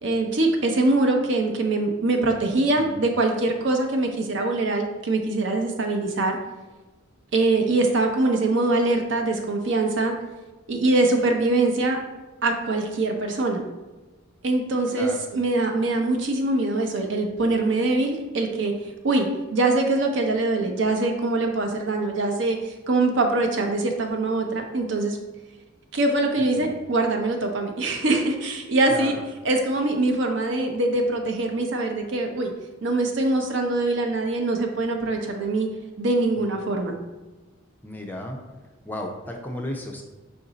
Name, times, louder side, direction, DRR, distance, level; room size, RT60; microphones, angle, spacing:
voice 1, 0.0-6.4 7.3-10.1 10.7-12.0 12.4-13.6 14.4-18.7 19.0-25.2 25.9-29.2 29.4-32.5 32.8-35.7 36.0-37.0, right 2 dB, 65° right, 3 dB, 0.6 m, -23 dB
voice 2, 14.9-15.2 26.4-26.7 28.9-29.2 36.4-36.5 37.8-38.4 38.8-40.0, left 1 dB, 10° left, 1 dB, 0.4 m, -34 dB
5.0 x 2.6 x 3.9 m, 1.2 s
head